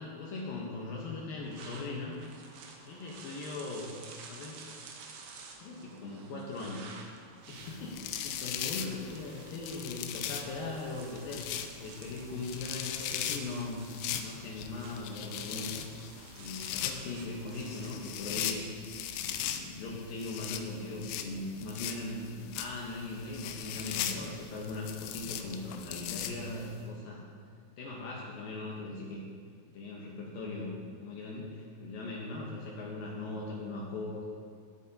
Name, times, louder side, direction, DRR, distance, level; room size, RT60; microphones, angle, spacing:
voice 1, 0.0-2.2 2.9-3.9 4.3-4.7 5.6-6.9 7.5-13.9 14.2-15.9 16.4-18.7 19.2-27.2 27.8-29.2 29.7-34.2, left 2 dB, 70° left, -3 dB, 2.2 m, -39 dB
sound 1, 1.4-18.5, right 4 dB, 70° right, 2.7 m, -52 dB
sound 2, 7.6-26.8, left 9 dB, 85° left, 3.1 m, -39 dB
17.5 x 8.3 x 2.8 m, 2.3 s
omnidirectional pair, 5.4 m